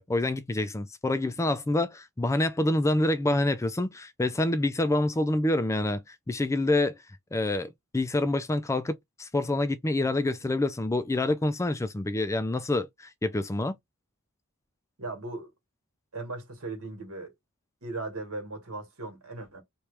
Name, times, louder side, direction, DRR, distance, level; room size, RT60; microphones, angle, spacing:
voice 1, 0.0-6.9 7.3-13.7, left 2 dB, 15° left, 0.3 m, -27 dB
voice 2, 15.0-15.5 16.1-17.3 17.8-19.6, right 2 dB, 80° right, 1.8 m, -37 dB
3.0 x 3.0 x 3.3 m
head